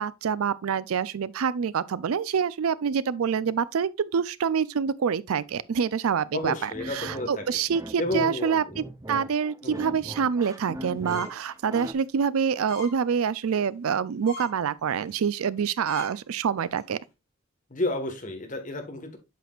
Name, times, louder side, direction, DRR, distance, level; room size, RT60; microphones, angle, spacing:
voice 1, 0.0-17.0, right 7 dB, 75° right, 0.4 m, -26 dB
voice 2, 6.3-7.6 8.0-8.8 9.6-9.8 17.7-19.2, left 2 dB, 35° left, 1.4 m, -31 dB
sound 1, 6.7-11.9, equal, 15° right, 0.6 m, -39 dB
sound 2, 11.1-11.4 11.9-12.0 12.7-12.9 13.3-13.6 14.0-14.1 14.2-14.5 15.0-15.2 15.6-15.7 15.8-16.1 16.6-16.8, left 4 dB, 75° left, 3.6 m, -41 dB
8.2 x 6.0 x 2.4 m
head